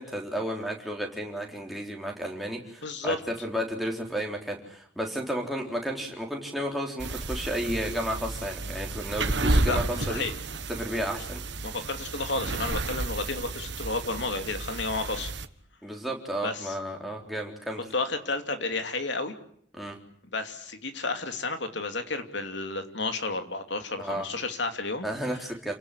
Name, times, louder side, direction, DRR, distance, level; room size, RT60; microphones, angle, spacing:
voice 1, 0.0-10.3 10.7-11.4 15.8-17.8 19.8-20.0 24.0-24.3 25.0-25.7, equal, ahead, 0 dB, 3.9 m, -32 dB
voice 2, 2.8-3.2 9.4-9.8 10.1-10.3 11.6-15.3 16.4-16.8 17.9-19.3 20.3-25.1, left 3 dB, 70° left, 7 dB, 2.9 m, -31 dB
sound 1, 7.0-15.5, right 2 dB, 70° right, 1.4 m, -31 dB
29.0 x 18.0 x 9.9 m, 0.64 s
head